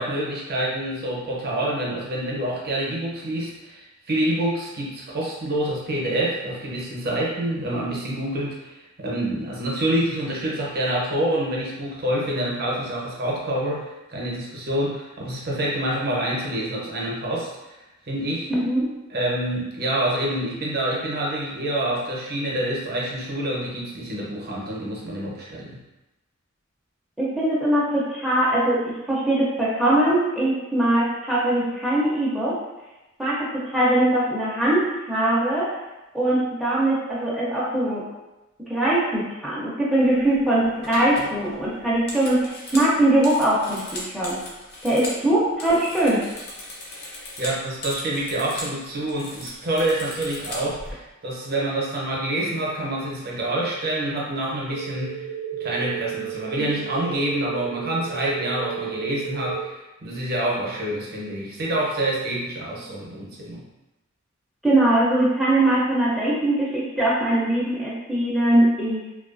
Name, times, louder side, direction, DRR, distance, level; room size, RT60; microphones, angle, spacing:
voice 1, 0.0-8.7 9.0-17.7 18.1-18.5 19.1-25.8 47.4-55.3 55.6-63.6, right 1 dB, 50° right, -3 dB, 0.6 m, -27 dB
voice 2, 18.5-18.9 27.2-32.6 33.2-35.7 36.1-38.0 38.7-44.4 44.8-46.2 56.6-56.7 64.6-69.1, right 1 dB, ahead, -8 dB, 0.4 m, -21 dB
sound 1, 40.2-40.4 40.8-45.2 45.5-48.8 49.0-50.9, left 1 dB, 50° left, 0.6 m, -37 dB
sound 2, 54.7-59.7, right 9 dB, 90° left, 1.0 m, -33 dB
2.5 x 2.3 x 2.4 m, 1.0 s
head